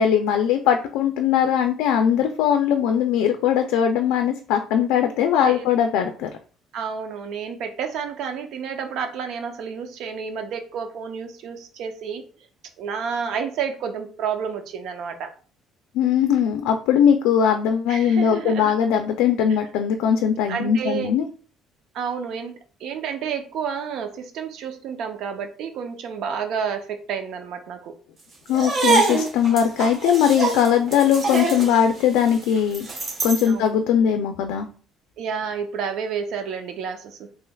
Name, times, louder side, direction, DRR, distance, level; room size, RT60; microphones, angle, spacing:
voice 1, 0.0-6.3 15.9-21.3 28.5-32.9 33.2-34.7, left 8 dB, 90° left, 5 dB, 0.4 m, -20 dB
voice 2, 6.7-12.3 12.8-15.3 17.9-18.7 19.5-19.6 20.5-21.2 21.9-27.9 33.5-33.8 35.2-37.3, right 6 dB, 70° right, 6 dB, 0.6 m, -30 dB
sound 1, 28.5-33.5, right 3 dB, 40° right, 1.1 m, -25 dB
3.3 x 3.0 x 2.3 m, 0.40 s
cardioid pair, 105°, 0 cm